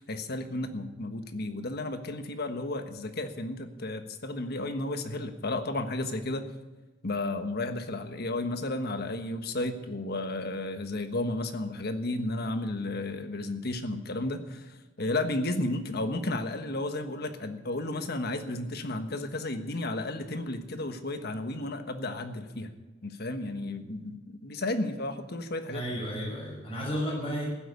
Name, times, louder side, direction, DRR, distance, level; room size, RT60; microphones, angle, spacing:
voice 1, 0.0-6.5 7.0-22.7 23.0-25.8, left 2 dB, 55° left, 7 dB, 1.4 m, -33 dB
voice 2, 25.7-27.5, equal, 30° left, -4 dB, 5.8 m, -33 dB
15.0 x 8.3 x 9.6 m, 1.2 s
head